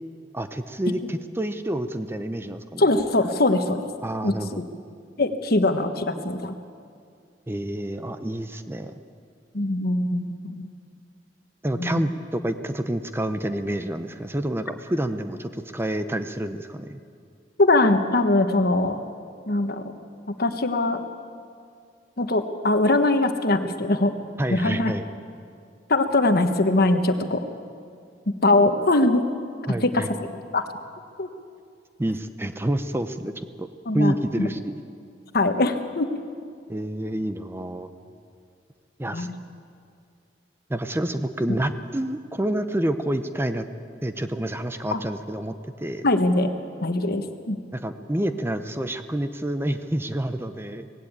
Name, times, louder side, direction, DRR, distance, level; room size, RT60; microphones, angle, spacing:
voice 1, 0.3-2.8 4.0-4.6 7.5-9.0 11.6-17.0 24.4-25.0 29.7-30.1 32.0-33.7 33.9-34.8 36.7-37.9 39.0-39.3 40.7-43.7 44.0-46.0 47.7-50.9, right 1 dB, 15° right, 9 dB, 0.7 m, -28 dB
voice 2, 2.8-3.8 4.2-4.7 5.2-6.5 9.5-10.7 11.8-12.0 17.6-19.0 19.5-19.8 20.3-21.0 22.2-24.1 24.5-24.9 25.9-27.4 28.4-29.2 29.8-30.0 30.5-30.6 31.2-31.3 33.9-34.5 35.3-36.1 39.1-39.3 44.9-45.0 46.0-46.5 46.8-47.6, left 2 dB, 55° left, 7 dB, 1.3 m, -22 dB
18.5 x 16.0 x 8.8 m, 2.3 s
head